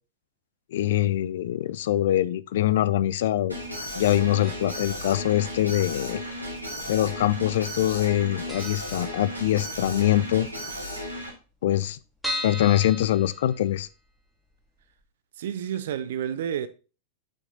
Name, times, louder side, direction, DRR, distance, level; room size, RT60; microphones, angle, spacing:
voice 1, 0.7-3.6 4.0-6.2 6.9-10.5 11.6-12.0 12.4-13.9, left 13 dB, 55° left, 0.4 m, -23 dB
Alarm, 3.5-11.3, equal, 85° right, 2.3 m, -35 dB
sound 1, 4.4-5.0 5.2-5.3 6.3-7.0 7.2-7.4 7.7-7.8 8.1-8.2 8.5-9.8 10.2-10.3 10.5-10.6 10.8-10.9 11.4-14.1 14.5-14.6 15.0-15.1, left 1 dB, 5° left, 2.4 m, -36 dB
voice 2, 15.4-16.7, right 9 dB, 60° right, 0.7 m, -30 dB
6.8 x 6.0 x 3.9 m
figure-of-eight pair, 90°, 0 cm